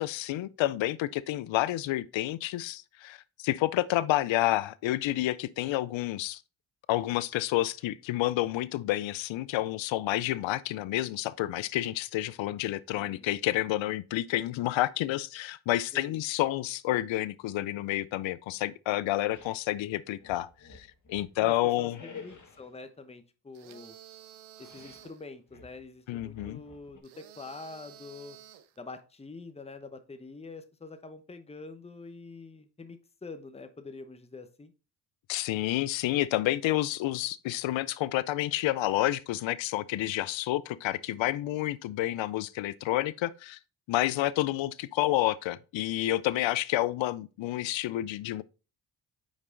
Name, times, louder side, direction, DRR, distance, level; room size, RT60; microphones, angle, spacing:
voice 1, 0.0-6.4 6.9-22.0 26.1-26.6 35.3-43.6 43.9-48.4, left 15 dB, 75° left, 0.6 m, -29 dB
voice 2, 13.0-13.3 15.9-16.2 21.4-24.0 24.6-28.4 28.8-34.7, left 3 dB, 15° left, 0.8 m, -45 dB
sound 1, 19.3-19.7 20.2-21.4 21.9-22.7 24.6-25.1 25.5-27.0, left 5 dB, 40° left, 1.5 m, -50 dB
sound 2, 23.5-25.2 27.0-28.8, right 11 dB, 85° right, 0.7 m, -52 dB
5.4 x 4.8 x 3.7 m
supercardioid pair, 55°, 47 cm